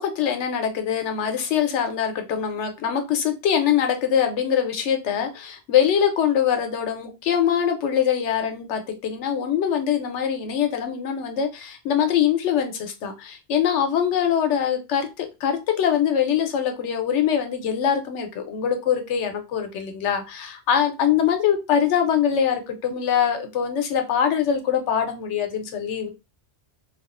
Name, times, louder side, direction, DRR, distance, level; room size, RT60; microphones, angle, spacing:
voice 1, 0.0-26.1, left 8 dB, 85° left, 6 dB, 0.9 m, -23 dB
2.4 x 2.3 x 2.4 m, 0.26 s
omnidirectional pair, 1.2 m